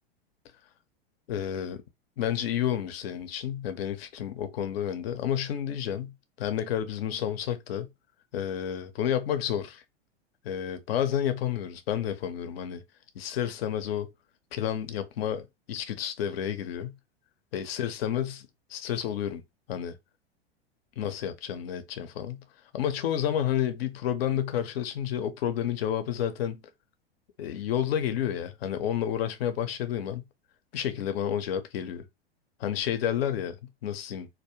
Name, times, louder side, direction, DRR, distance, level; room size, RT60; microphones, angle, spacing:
voice 1, 1.3-1.8 2.2-7.9 8.3-9.8 10.4-12.8 13.2-14.1 14.5-16.9 17.5-18.4 18.7-19.4 19.7-20.0 21.0-22.4 22.7-26.6 27.4-30.2 30.7-32.0 32.6-33.5 33.8-34.3, left 10 dB, 70° left, 0.5 m, -30 dB
2.3 x 2.1 x 2.8 m
hypercardioid pair, 100°, 32 cm